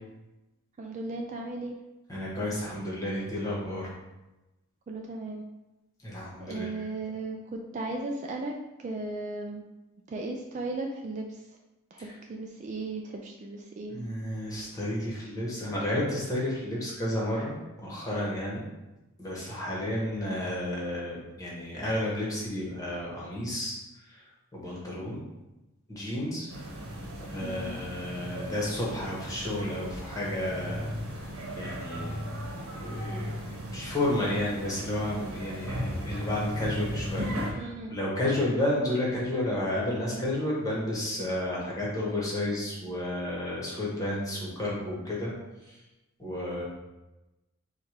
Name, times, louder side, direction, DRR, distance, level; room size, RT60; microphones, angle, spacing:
voice 1, 0.8-1.8 4.9-5.4 6.4-8.5 8.8-9.6 10.1-11.4 11.9-14.0 27.4-27.8 37.5-38.0, right 2 dB, 35° right, 1 dB, 0.3 m, -36 dB
voice 2, 2.1-3.9 6.0-6.7 12.0-12.1 13.9-18.6 19.2-23.8 24.5-25.2 25.9-26.5 27.3-31.3 31.6-32.1 32.8-33.4 33.7-45.3 45.7-45.8 46.2-46.7, left 1 dB, 15° left, -5 dB, 1.2 m, -31 dB
sound 1, 26.5-37.5, equal, 75° right, 1.1 m, -36 dB
4.4 x 2.4 x 4.7 m, 1.0 s
head